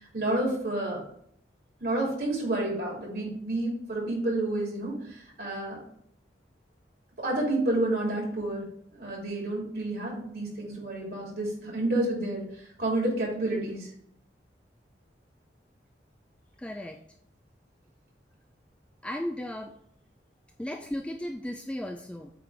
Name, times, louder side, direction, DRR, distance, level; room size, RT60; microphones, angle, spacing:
voice 1, 0.1-1.0 1.8-5.8 7.2-8.6 8.9-12.4 12.8-13.9, right 1 dB, 60° right, -3 dB, 3.0 m, -29 dB
voice 2, 16.6-17.0 19.0-19.7 20.6-22.3, left 1 dB, 5° left, 3 dB, 0.3 m, -35 dB
8.4 x 3.7 x 4.8 m, 0.68 s
head